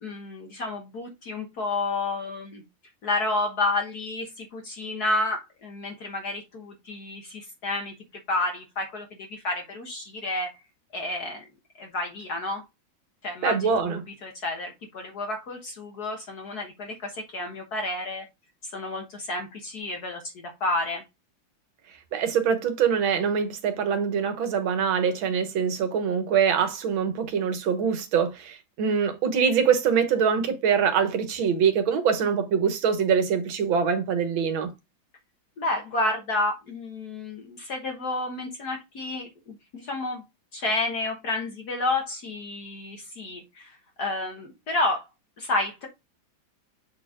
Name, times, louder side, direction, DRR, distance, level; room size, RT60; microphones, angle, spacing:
voice 1, 0.0-2.6 3.0-7.9 8.3-10.5 10.9-11.4 11.8-12.6 13.2-18.3 18.7-21.0 35.6-40.2 40.5-45.0 45.4-45.9, left 2 dB, 55° left, 1.6 m, -30 dB
voice 2, 13.4-14.0 22.1-34.7, right 7 dB, 80° right, 1.9 m, -24 dB
7.6 x 4.3 x 3.7 m
omnidirectional pair, 2.2 m